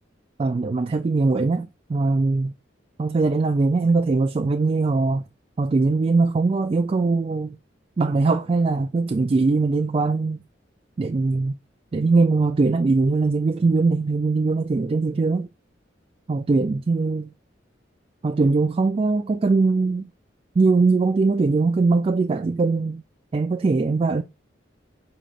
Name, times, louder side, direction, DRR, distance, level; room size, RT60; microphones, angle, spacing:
voice 1, 0.4-2.5 3.0-5.2 5.6-7.6 8.0-10.4 11.0-11.6 11.9-15.5 16.3-17.3 18.2-20.1 20.6-23.0 23.3-24.2, right 3 dB, 30° right, 0.3 m, -21 dB
5.1 x 2.8 x 3.5 m
head